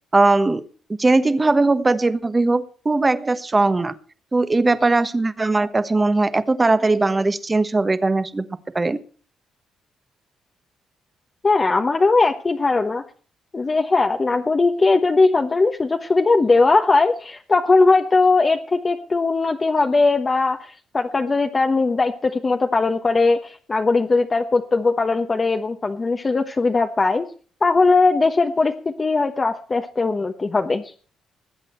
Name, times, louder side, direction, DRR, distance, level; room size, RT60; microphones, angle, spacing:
voice 1, 0.1-0.7 1.0-3.9 4.3-8.4 8.7-9.0, right 3 dB, 20° right, 1.2 m, -19 dB
voice 2, 11.4-13.0 13.5-27.2 27.6-28.7 29.0-30.9, left 3 dB, 30° left, 1.1 m, -19 dB
20.5 x 8.3 x 4.5 m
cardioid pair, 90°, 0 cm